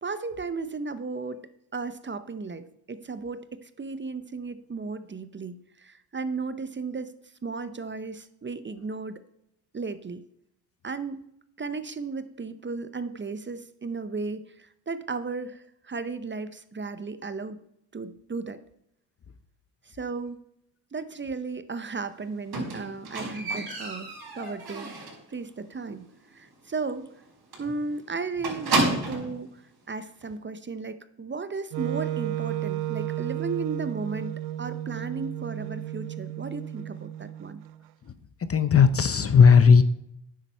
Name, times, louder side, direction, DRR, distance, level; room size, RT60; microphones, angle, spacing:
voice 1, 0.0-7.1 7.4-9.2 9.7-10.2 10.8-11.3 11.6-17.6 17.9-18.6 19.8-20.4 20.9-24.9 25.3-27.2 27.6-37.6, right 4 dB, 25° right, 13 dB, 0.7 m, -35 dB
Squeak, 22.5-25.3 25.6-26.0 26.3-26.4 26.8-26.9 27.1-27.3 27.5-29.4 30.2-30.3, right 2 dB, 50° right, 4.8 m, -30 dB
Wind instrument woodwind instrument, 31.7-37.8, right 13 dB, 90° right, 0.6 m, -33 dB
voice 2, 38.5-39.8, left 6 dB, 30° left, 13 dB, 0.7 m, -16 dB
9.7 x 7.5 x 5.5 m, 0.77 s
cardioid pair, 90°, 47 cm